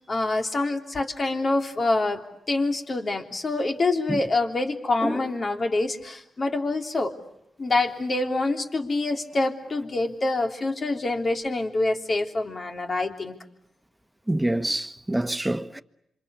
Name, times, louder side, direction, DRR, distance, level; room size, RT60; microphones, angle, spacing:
voice 1, 0.0-2.2 2.5-7.1 7.6-13.3, left 2 dB, 45° left, 3.4 m, -26 dB
voice 2, 14.3-15.8, right 1 dB, 10° right, 1.3 m, -26 dB
27.0 x 24.5 x 8.4 m
supercardioid pair, 50°, 0 cm